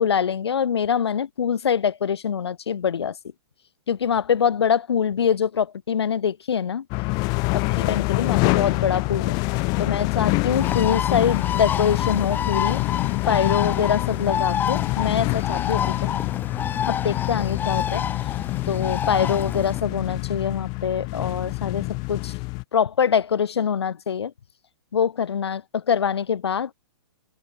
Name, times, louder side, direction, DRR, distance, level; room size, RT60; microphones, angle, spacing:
voice 1, 0.0-3.1 3.9-6.8 7.5-9.4 9.8-12.8 13.3-16.1 16.9-18.0 18.7-22.4 22.7-24.3 24.9-26.7, left 7 dB, 85° left, 2.5 m, -24 dB
sound 1, 6.9-22.6, left 29 dB, 30° left, 1.1 m, -26 dB
Bird, 10.5-19.8, left 8 dB, 15° left, 2.5 m, -28 dB
hypercardioid pair, 150°, 13 cm